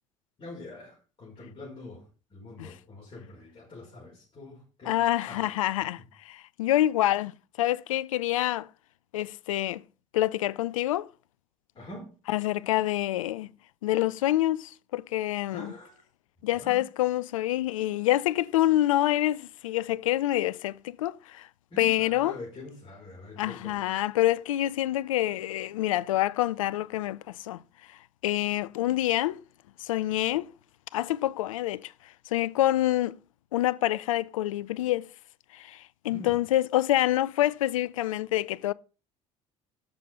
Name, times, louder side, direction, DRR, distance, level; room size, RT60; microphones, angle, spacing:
voice 1, 0.4-2.0 2.3-5.0 5.3-5.5 11.7-12.1 15.5-16.0 16.4-16.8 21.7-23.9 36.1-36.4, left 2 dB, 35° left, 5.9 m, -44 dB
voice 2, 4.8-7.3 7.6-8.7 9.1-9.8 10.1-11.1 12.3-13.5 13.8-15.7 16.4-21.5 21.8-22.4 23.4-27.6 27.9-28.0 28.2-29.4 29.8-30.5 30.9-33.2 33.5-35.1 35.5-38.7, left 14 dB, 80° left, 0.4 m, -27 dB
10.5 x 6.8 x 5.6 m
hypercardioid pair, 60°, 17 cm